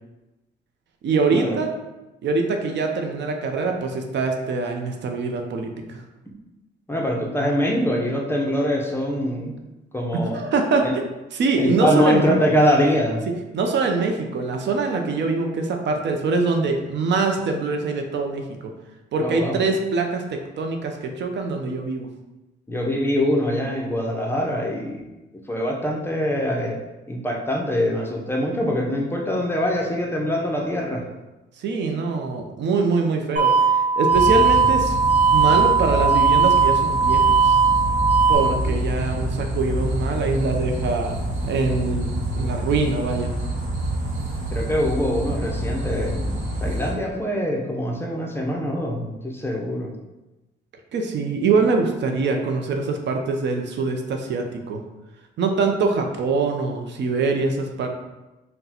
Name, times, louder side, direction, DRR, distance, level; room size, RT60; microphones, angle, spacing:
voice 1, 1.0-1.7 2.2-6.0 10.1-10.9 11.3-12.3 13.5-18.7 19.1-22.1 31.6-35.0 35.3-37.6 38.3-41.2 41.5-43.3 50.9-54.8 55.4-57.9, right 4 dB, 65° right, 3 dB, 0.6 m, -24 dB
voice 2, 6.9-9.5 9.9-10.4 11.6-13.2 19.2-19.6 22.7-25.0 25.5-26.8 27.1-31.0 44.5-46.3 46.6-49.9, equal, 10° left, -1 dB, 0.7 m, -23 dB
sound 1, 33.4-38.4, right 5 dB, 35° right, 1.0 m, -18 dB
sound 2, 34.1-46.9, right 1 dB, 80° right, 1.0 m, -27 dB
3.9 x 2.2 x 4.2 m, 1.0 s
cardioid pair, 90°, 20 cm